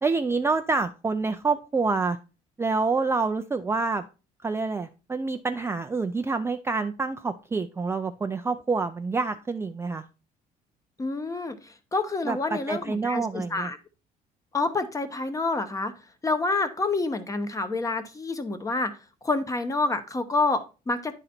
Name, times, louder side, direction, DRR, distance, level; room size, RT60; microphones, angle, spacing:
voice 1, 0.0-2.2 2.6-4.0 4.4-10.0 12.3-13.7, right 4 dB, 15° right, 6 dB, 0.4 m, -27 dB
voice 2, 11.0-11.6 11.9-13.8 14.5-15.9 16.2-18.9 19.2-21.1, left 3 dB, 20° left, 10 dB, 0.9 m, -27 dB
9.9 x 3.9 x 4.2 m, 0.32 s
cardioid pair, 110°, 17 cm